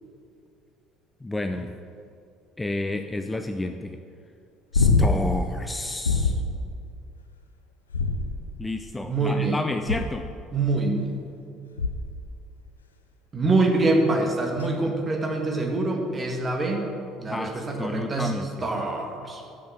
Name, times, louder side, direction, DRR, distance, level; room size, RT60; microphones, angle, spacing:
voice 1, 1.2-1.7 2.6-4.0 4.7-6.4 8.6-10.3 17.3-18.7, left 2 dB, 15° left, 7 dB, 0.5 m, -30 dB
sound 1, 4.7-5.4 6.0-6.6 7.9-8.6 9.9-10.3 11.8-12.2 14.6-14.7, left 4 dB, 80° left, 0.6 m, -23 dB
voice 2, 9.0-9.6 10.5-11.1 13.3-16.8 17.2-18.3 18.6-19.4, right 2 dB, 25° right, 2 dB, 1.7 m, -25 dB
8.4 x 6.8 x 7.2 m, 2.5 s
figure-of-eight pair, 60°, 0 cm